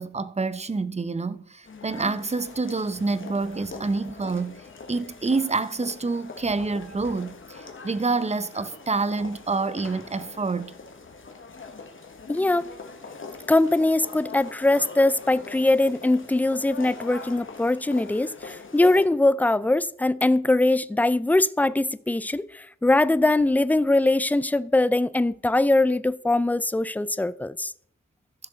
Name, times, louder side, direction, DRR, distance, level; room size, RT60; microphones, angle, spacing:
voice 1, 0.0-4.6 4.9-10.7, right 3 dB, 20° right, 0.7 m, -27 dB
sound 1, 1.6-19.1, left 4 dB, 45° left, 1.6 m, -42 dB
voice 2, 12.3-12.7 13.5-27.7, left 2 dB, 5° left, 0.4 m, -22 dB
14.5 x 6.2 x 4.0 m
cardioid pair, 60°, 29 cm